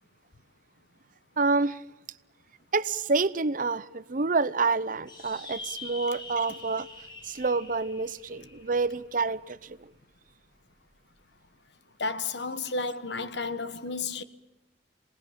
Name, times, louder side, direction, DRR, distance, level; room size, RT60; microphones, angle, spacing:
voice 1, 1.4-1.8 2.7-6.9 7.2-9.9, right 4 dB, 50° right, 0.8 m, -28 dB
sound 1, 5.1-9.8, left 2 dB, 25° left, 4.3 m, -44 dB
voice 2, 12.0-14.2, left 3 dB, 80° left, 1.4 m, -32 dB
27.0 x 19.0 x 8.8 m
head